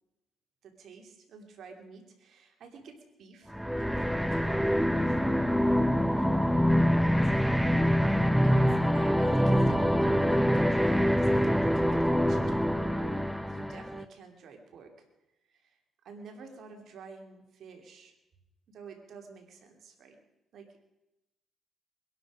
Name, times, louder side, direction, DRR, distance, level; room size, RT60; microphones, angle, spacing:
voice 1, 0.6-3.9 4.3-5.2 5.7-7.4 8.4-14.9 15.5-15.8 16.0-18.1 18.7-20.2 20.5-20.8, right 5 dB, 70° right, 3 dB, 3.0 m, -49 dB
sound 1, 3.5-14.0, equal, ahead, 0.7 m, -25 dB
21.5 x 12.0 x 5.0 m, 0.92 s
cardioid pair, 90°, 0 cm